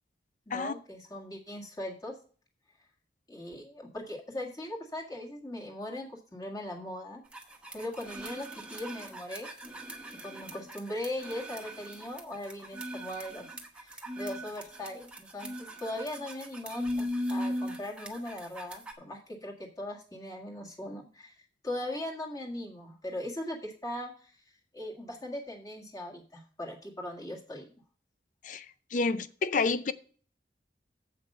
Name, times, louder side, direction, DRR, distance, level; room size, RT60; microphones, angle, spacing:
voice 1, 0.5-2.1 3.3-7.2 7.7-9.5 10.2-13.5 13.8-21.4 21.6-24.3 24.7-27.7, left 1 dB, 20° left, -1 dB, 1.7 m, -39 dB
sound 1, 7.3-18.9, equal, 5° right, 0.9 m, -39 dB
voice 2, 28.9-29.9, left 4 dB, 45° left, 15 dB, 0.5 m, -29 dB
7.6 x 5.7 x 6.5 m, 0.43 s
head